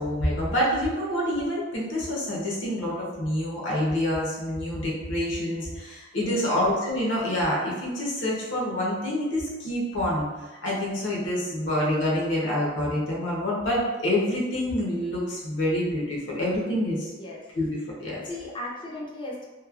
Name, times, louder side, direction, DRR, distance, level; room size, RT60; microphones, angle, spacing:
voice 1, 0.0-10.3 10.6-17.1 17.6-18.2, left 1 dB, 75° left, -4 dB, 0.8 m, -27 dB
voice 2, 6.2-6.6 17.2-17.6 18.2-19.5, left 1 dB, 25° left, -3 dB, 0.4 m, -37 dB
3.0 x 2.2 x 2.4 m, 1.2 s
head